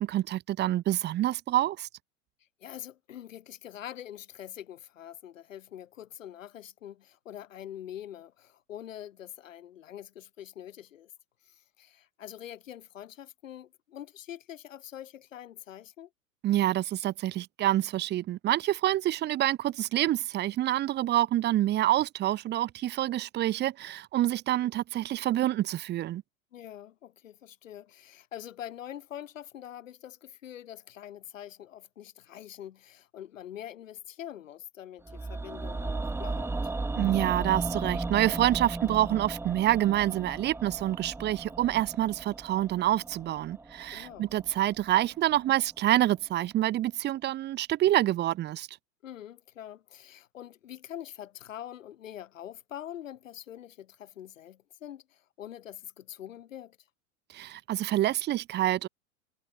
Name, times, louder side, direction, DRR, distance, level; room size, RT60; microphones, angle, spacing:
voice 1, 0.0-1.9 16.4-26.2 37.0-48.7 57.3-58.9, right 14 dB, 25° right, 1.2 m, -27 dB
voice 2, 2.6-11.1 11.4-16.1 26.5-36.7 43.9-44.3 49.0-56.8, left 11 dB, 65° left, 3.0 m, -44 dB
sound 1, 35.1-45.2 45.5-45.6, right 3 dB, 5° right, 1.2 m, -36 dB
figure-of-eight pair, 90°, 42 cm